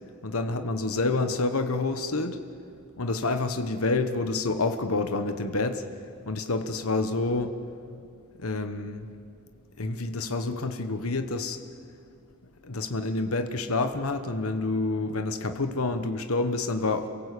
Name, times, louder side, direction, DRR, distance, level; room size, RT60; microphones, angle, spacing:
voice 1, 0.2-2.4 3.0-5.8 6.3-7.6 8.4-9.1 9.8-11.6 12.6-17.1, left 3 dB, 85° left, 8 dB, 1.2 m, -28 dB
28.5 x 18.0 x 8.5 m, 2.4 s
head